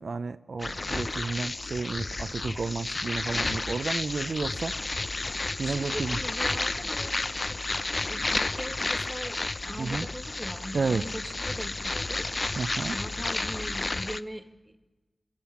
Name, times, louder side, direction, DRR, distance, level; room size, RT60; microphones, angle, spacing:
voice 1, 0.0-4.8 5.6-6.2 9.8-10.1 10.7-11.0 12.6-13.0, right 4 dB, 70° right, 10 dB, 0.6 m, -31 dB
sound 1, 0.6-14.2, left 2 dB, 45° left, 0.7 m, -31 dB
voice 2, 5.6-12.3 12.9-14.8, equal, 15° right, 9 dB, 1.8 m, -41 dB
23.5 x 13.0 x 8.5 m, 1.2 s
cardioid pair, 40°, 0 cm